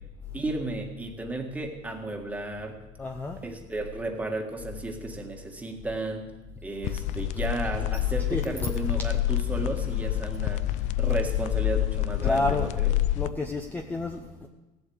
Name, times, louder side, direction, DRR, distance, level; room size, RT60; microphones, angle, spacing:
voice 1, 0.3-2.8 3.4-6.3 6.6-10.6 11.0-12.9, right 2 dB, 10° right, 2 dB, 1.7 m, -33 dB
voice 2, 3.0-3.4 8.3-8.7 12.2-12.8 13.2-14.5, left 2 dB, 10° left, 3 dB, 0.8 m, -30 dB
sound 1, 6.8-13.3, left 14 dB, 50° left, 0.4 m, -27 dB
16.5 x 8.1 x 8.0 m, 1.1 s
cardioid pair, 150°, 16 cm